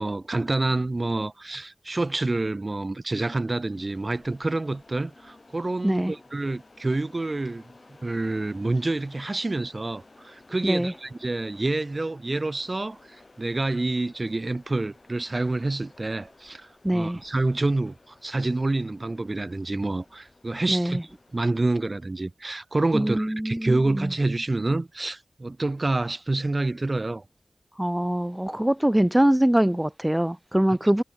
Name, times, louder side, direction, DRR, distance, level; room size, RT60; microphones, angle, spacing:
voice 1, 0.0-7.7 8.0-21.0 21.3-27.2, right 2 dB, 40° right, 1.2 m, -27 dB
sound 1, 3.4-21.4, left 2 dB, 45° left, 3.2 m, -55 dB
voice 2, 5.8-6.2 10.6-10.9 16.8-17.2 20.7-21.0 22.9-24.1 27.8-31.0, right 1 dB, 10° right, 1.0 m, -23 dB
wide cardioid pair, 80°, 0 cm